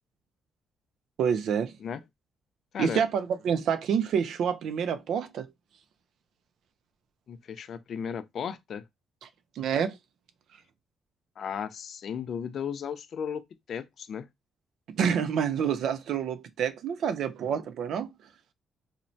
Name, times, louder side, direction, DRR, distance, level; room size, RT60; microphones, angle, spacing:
voice 1, 1.2-1.7 2.8-5.5 9.6-9.9 14.9-18.1, right 7 dB, 75° right, 0.3 m, -28 dB
voice 2, 2.7-3.0 7.3-8.8 11.4-13.4 13.7-14.3, left 7 dB, 60° left, 0.3 m, -35 dB
3.0 x 2.1 x 2.5 m
cardioid pair, 90°, 0 cm